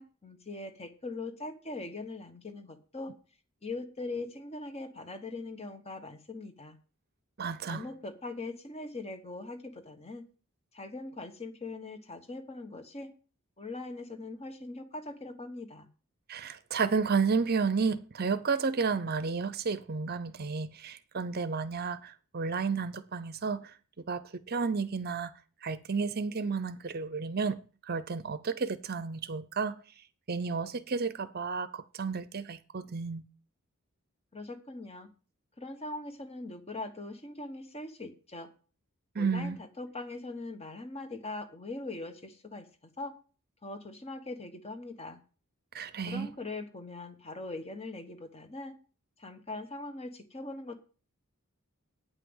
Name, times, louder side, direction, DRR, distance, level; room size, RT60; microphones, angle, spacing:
voice 1, 0.0-3.1 3.6-6.8 7.7-10.2 10.7-13.1 13.6-15.9 34.3-35.1 35.6-38.5 39.2-42.6 43.0-43.1 43.6-45.2 46.1-48.7 49.2-50.8, left 2 dB, 30° left, 1.2 m, -41 dB
voice 2, 7.4-7.8 16.3-23.7 24.1-25.3 25.6-27.6 27.8-29.8 30.3-33.2 39.1-39.6 45.7-46.3, right 5 dB, 45° right, 0.6 m, -32 dB
9.1 x 5.8 x 7.9 m
head